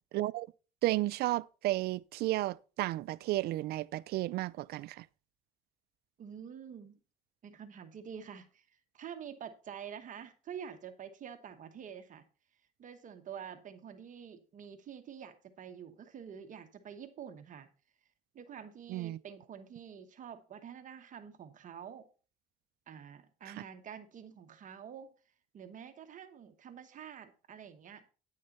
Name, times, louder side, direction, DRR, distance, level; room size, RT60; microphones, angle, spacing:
voice 1, 0.1-0.5 0.8-5.1 18.9-19.2 23.5-23.6, right 17 dB, 70° right, 0.4 m, -33 dB
voice 2, 6.2-7.0 7.4-8.7 8.9-12.2 12.8-17.7 18.3-22.1 22.9-25.1 25.5-28.0, right 8 dB, 50° right, 1.1 m, -47 dB
9.8 x 6.5 x 4.2 m
cardioid pair, 110°, 17 cm